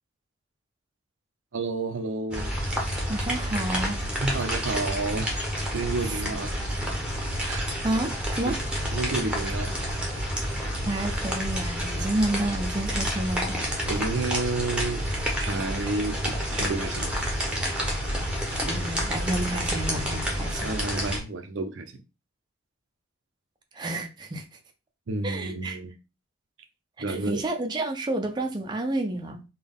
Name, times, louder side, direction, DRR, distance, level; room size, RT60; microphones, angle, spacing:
voice 1, 1.5-2.5 4.2-5.4 5.7-6.5 7.5-7.7 8.5-8.6 8.9-9.7 13.9-15.1 15.4-17.2 20.6-22.0 25.1-25.9 27.0-27.4, right 3 dB, 75° right, 0.5 m, -30 dB
sound 1, 2.3-21.2, equal, 5° right, 0.7 m, -29 dB
voice 2, 3.1-4.0 6.0-6.2 7.8-8.6 10.8-13.6 18.6-20.7 23.7-24.4 25.2-25.8 27.1-29.4, right 1 dB, 20° right, 0.4 m, -30 dB
3.5 x 2.3 x 3.5 m
head